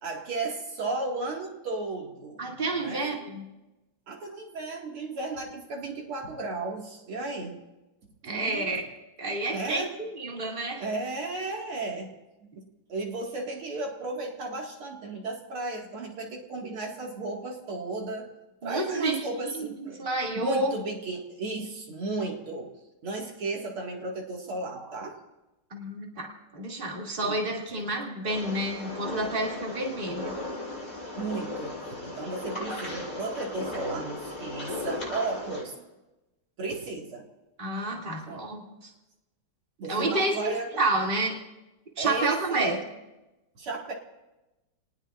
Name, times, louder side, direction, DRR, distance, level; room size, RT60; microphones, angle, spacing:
voice 1, 0.0-3.2 4.1-7.6 8.2-8.7 9.5-9.9 10.8-12.1 12.6-18.3 18.6-20.1 20.4-22.7 23.0-25.2 27.2-27.4 31.1-35.8 36.6-37.3 38.3-38.4 39.8-40.8 42.0-42.8 43.6-43.9, right 3 dB, 80° right, 0 dB, 2.9 m, -34 dB
voice 2, 2.4-3.4 8.2-8.8 9.2-10.8 18.6-20.7 25.7-30.3 37.6-38.6 39.9-41.4 42.0-42.8, right 2 dB, 25° right, -2 dB, 2.6 m, -29 dB
sound 1, 28.3-35.6, left 2 dB, 20° left, 7.4 m, -36 dB
29.5 x 19.0 x 2.5 m, 1.0 s
omnidirectional pair, 2.3 m